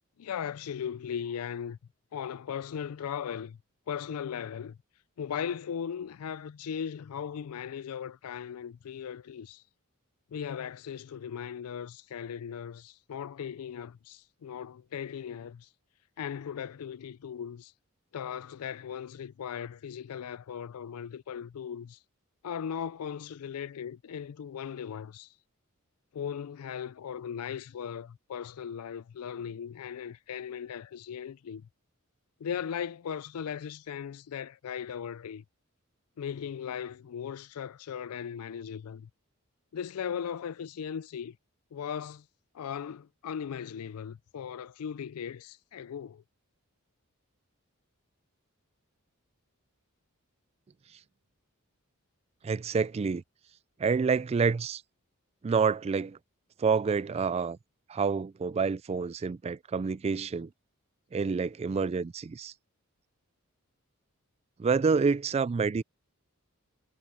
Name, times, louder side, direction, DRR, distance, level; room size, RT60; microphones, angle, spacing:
voice 1, 0.2-1.8 2.1-3.6 3.9-4.8 5.2-9.6 10.3-15.7 16.2-17.7 18.1-22.0 22.4-25.3 26.1-31.7 32.4-35.4 36.2-39.1 39.7-41.4 41.7-42.3 42.5-46.2, left 8 dB, 90° left, 0.4 m, -38 dB
voice 2, 52.4-53.2 53.8-54.8 55.4-56.2 56.6-57.6 57.9-60.5 61.1-62.5 64.6-65.8, right 5 dB, 30° right, 0.3 m, -28 dB
head